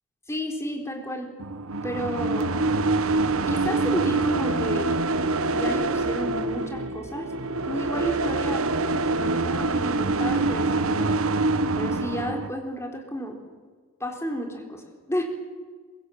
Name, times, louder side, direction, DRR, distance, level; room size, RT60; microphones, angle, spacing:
voice 1, 0.3-1.3 1.8-2.6 3.5-5.0 5.5-7.3 7.6-8.7 9.1-11.1 11.7-13.4 14.0-15.2, equal, 10° left, 2 dB, 4.1 m, -32 dB
sound 1, 1.4-12.5, right 3 dB, 70° right, 1.2 m, -25 dB
23.0 x 22.5 x 8.8 m, 1.5 s
head